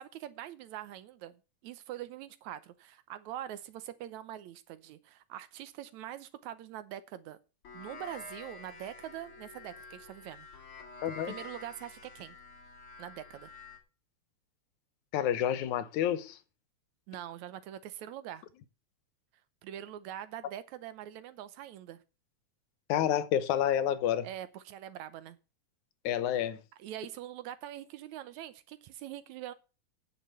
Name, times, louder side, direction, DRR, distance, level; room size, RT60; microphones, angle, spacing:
voice 1, 0.0-1.4 1.6-7.4 7.7-10.5 11.3-12.4 13.0-13.5 17.1-18.4 19.6-22.0 24.2-25.4 26.8-29.5, right 12 dB, 80° right, 2.2 m, -43 dB
sound 1, 7.6-13.8, left 4 dB, 50° left, 2.9 m, -49 dB
voice 2, 11.0-11.3 15.1-16.4 22.9-24.3 26.0-26.6, left 10 dB, 85° left, 2.4 m, -29 dB
9.3 x 6.7 x 7.5 m
omnidirectional pair, 3.3 m